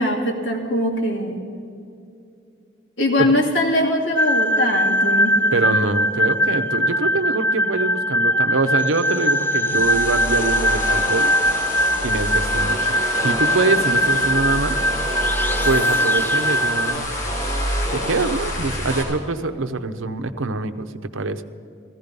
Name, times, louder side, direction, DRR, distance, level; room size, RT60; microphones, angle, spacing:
voice 1, 0.0-1.4 3.0-5.3, left 1 dB, 75° left, -1 dB, 2.6 m, -21 dB
sound 1, 4.2-17.0, equal, 10° left, 0.4 m, -21 dB
voice 2, 5.5-11.3 12.0-14.8 15.6-17.1 17.9-20.9 21.1-21.4, right 3 dB, 90° right, 10 dB, 0.8 m, -24 dB
sound 2, 9.7-19.0, equal, 40° left, 3.4 m, -27 dB
16.0 x 15.0 x 5.4 m, 2.5 s
head